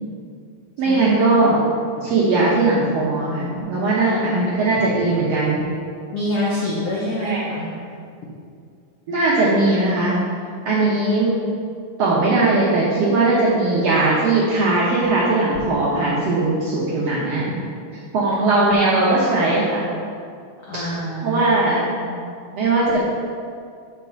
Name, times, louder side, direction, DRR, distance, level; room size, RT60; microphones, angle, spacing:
voice 1, 0.8-1.6 2.0-5.6 7.2-7.4 9.1-10.2 10.6-11.3 12.0-17.6 18.1-19.8 20.7-20.9 21.2-21.8 22.5-23.1, right 2 dB, 75° right, -7 dB, 1.4 m, -19 dB
voice 2, 6.1-7.7 18.3-18.4 20.7-21.5 21.9-22.2, left 1 dB, 80° left, -7 dB, 1.2 m, -26 dB
6.8 x 4.2 x 5.7 m, 2.3 s
omnidirectional pair, 4.1 m